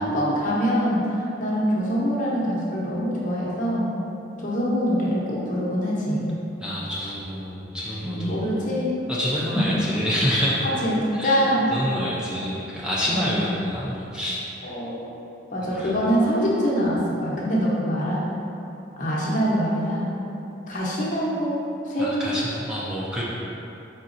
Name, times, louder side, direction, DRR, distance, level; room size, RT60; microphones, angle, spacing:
voice 1, 0.0-3.9 4.4-6.3 8.0-8.9 9.7-9.8 10.6-11.7 13.1-13.5 14.6-15.0 15.5-18.2 19.0-20.1 20.7-22.1, equal, 45° left, -6 dB, 0.9 m, -24 dB
voice 2, 6.6-8.4 9.1-10.6 11.1-14.4 15.7-15.9 22.0-23.2, equal, 5° right, -7 dB, 0.5 m, -27 dB
4.9 x 4.2 x 2.5 m, 2.9 s
head